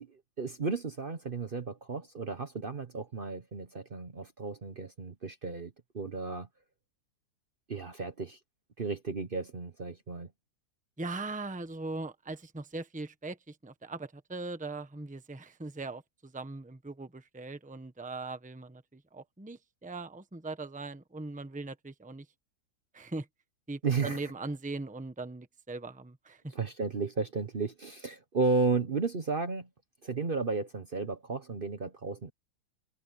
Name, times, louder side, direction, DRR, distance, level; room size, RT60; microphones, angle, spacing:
voice 1, 0.0-6.5 7.7-8.4 8.8-10.3 23.8-24.3 26.5-29.7 30.0-32.3, right 4 dB, 40° right, 1.1 m, -33 dB
voice 2, 11.0-22.2 22.9-23.3 23.7-26.4, right 3 dB, 5° right, 1.0 m, -40 dB
omnidirectional pair, 1.6 m